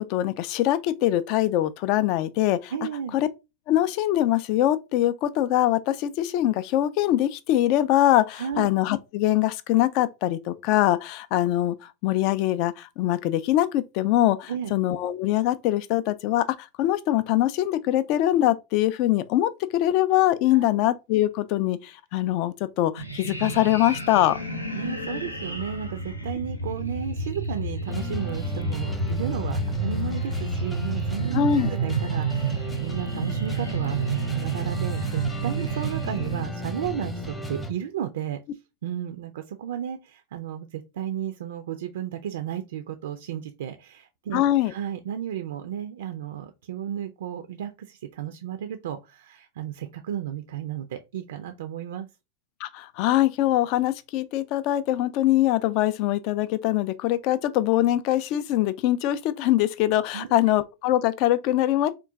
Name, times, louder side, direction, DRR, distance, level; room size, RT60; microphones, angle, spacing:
voice 1, 0.0-2.7 3.1-3.3 3.7-24.4 31.3-31.7 44.3-44.7 52.6-61.9, left 13 dB, 45° left, 0.4 m, -23 dB
voice 2, 2.7-3.2 8.4-8.7 14.5-14.7 20.5-20.8 24.7-38.4 38.8-52.1 60.1-60.4, right 9 dB, 60° right, 0.4 m, -33 dB
sound 1, 23.0-36.5, right 3 dB, 85° left, 0.7 m, -30 dB
sound 2, 27.9-37.7, equal, 10° left, 0.7 m, -34 dB
3.7 x 2.4 x 3.5 m
figure-of-eight pair, 90°, 0 cm